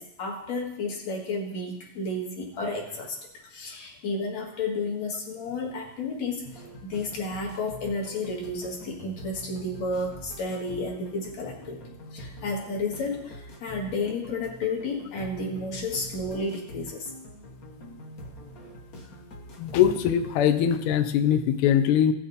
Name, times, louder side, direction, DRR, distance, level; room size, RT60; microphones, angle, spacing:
voice 1, 0.0-3.2 3.5-11.8 12.1-17.1, left 2 dB, 65° left, 0 dB, 2.8 m, -32 dB
sound 1, 6.4-20.4, equal, 50° left, 1.1 m, -45 dB
voice 2, 19.6-22.1, left 9 dB, 80° left, 8 dB, 1.2 m, -22 dB
16.5 x 6.6 x 4.1 m, 0.82 s
omnidirectional pair, 3.3 m